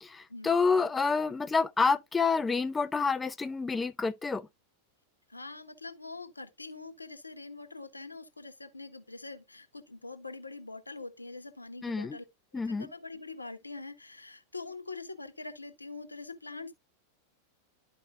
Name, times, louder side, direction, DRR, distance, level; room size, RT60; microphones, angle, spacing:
voice 1, 0.0-4.5 11.8-12.2 12.5-12.9, left 4 dB, 15° left, 0.5 m, -28 dB
voice 2, 5.3-12.2 12.5-16.7, left 3 dB, 80° left, 0.9 m, -44 dB
12.5 x 4.8 x 2.2 m
figure-of-eight pair, 90°, 0 cm